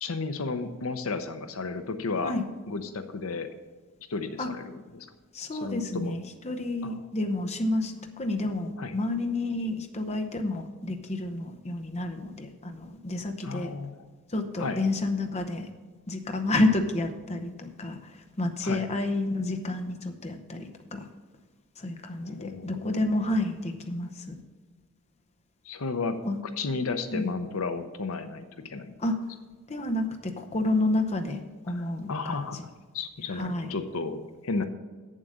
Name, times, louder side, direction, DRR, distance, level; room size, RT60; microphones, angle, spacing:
voice 1, 0.0-2.4 2.7-3.5 4.1-5.1 5.5-6.2 6.8-6.9 8.8-8.9 13.4-14.0 14.6-14.8 18.6-18.8 22.2-23.0 25.6-26.2 26.6-28.9 31.7-34.6, left 4 dB, 70° left, 9 dB, 0.7 m, -33 dB
voice 2, 5.3-13.7 14.3-15.7 16.1-18.0 18.4-21.0 21.8-24.3 26.2-26.4 27.1-27.3 29.0-29.2 29.7-31.4 31.6-32.6 33.3-33.7, left 2 dB, 30° left, 5 dB, 0.8 m, -30 dB
8.0 x 7.5 x 6.3 m, 1.4 s
head